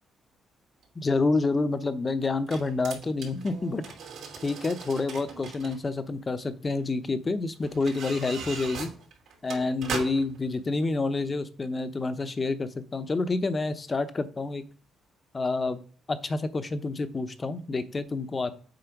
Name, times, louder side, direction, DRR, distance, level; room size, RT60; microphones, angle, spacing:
sound 1, 0.8-0.9 2.2-5.8 6.7-6.8 7.6-10.4 10.8-10.9, right 5 dB, 75° right, 2.9 m, -39 dB
voice 1, 0.9-3.9 4.4-8.9 9.4-14.6 15.3-15.8 16.1-18.5, left 3 dB, 30° left, 11 dB, 0.9 m, -28 dB
7.9 x 4.3 x 5.9 m, 0.42 s
cardioid pair, 90°, 0 cm